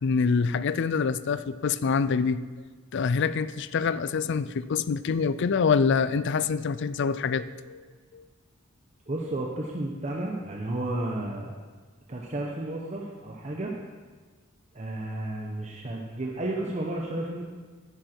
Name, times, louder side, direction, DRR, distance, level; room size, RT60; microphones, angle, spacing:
voice 1, 0.0-2.4 2.9-7.8 8.1-8.2, left 5 dB, 60° left, 15 dB, 0.4 m, -26 dB
voice 2, 9.1-11.5 12.1-13.7 14.7-17.4, right 1 dB, 35° right, -1 dB, 1.0 m, -32 dB
10.0 x 10.0 x 4.5 m, 1.4 s
head